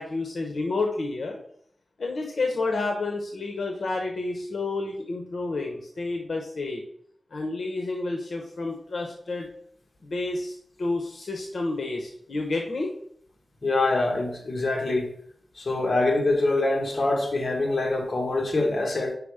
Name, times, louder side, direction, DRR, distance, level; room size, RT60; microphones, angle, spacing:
voice 1, 0.0-1.4 2.0-6.8 7.3-9.5 10.0-12.9, left 3 dB, 75° left, 0.9 m, -30 dB
voice 2, 13.6-15.1 15.6-19.1, left 2 dB, 45° left, 1.5 m, -24 dB
5.0 x 4.8 x 4.9 m
wide cardioid pair, 100°, 0 cm